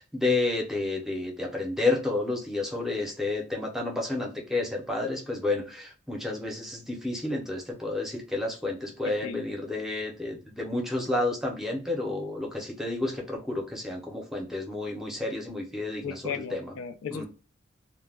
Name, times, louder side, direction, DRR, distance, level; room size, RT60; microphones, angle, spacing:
voice 1, 0.0-16.7 17.1-17.3, left 2 dB, ahead, 0.6 m, -30 dB
voice 2, 9.0-9.5 16.0-17.3, left 7 dB, 85° left, 0.3 m, -36 dB
2.2 x 2.1 x 3.4 m
head